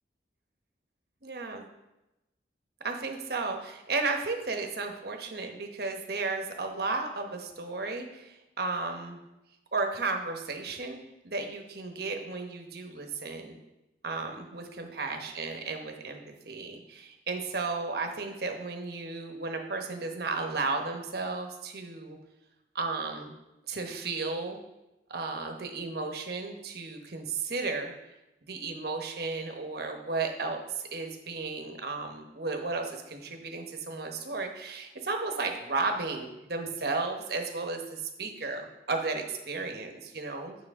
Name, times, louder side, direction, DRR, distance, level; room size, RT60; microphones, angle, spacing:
voice 1, 1.2-1.6 2.8-9.2 9.7-11.0 11.2-13.6 14.0-16.2 16.4-22.2 22.7-23.3 23.7-24.6 25.1-27.9 28.4-40.6, right 3 dB, 60° right, 4 dB, 1.0 m, -34 dB
9.2 x 5.8 x 3.6 m, 0.96 s
head